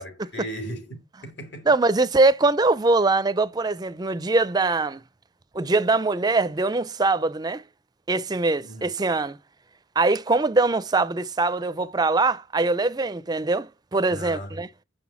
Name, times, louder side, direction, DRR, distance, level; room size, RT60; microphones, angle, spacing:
voice 1, 0.0-1.7 8.6-8.9 14.1-14.6, equal, 65° left, 3.1 m, -37 dB
voice 2, 1.7-5.0 5.5-7.6 8.1-9.4 10.0-14.7, right 3 dB, 20° right, 0.4 m, -22 dB
7.7 x 6.1 x 5.8 m
head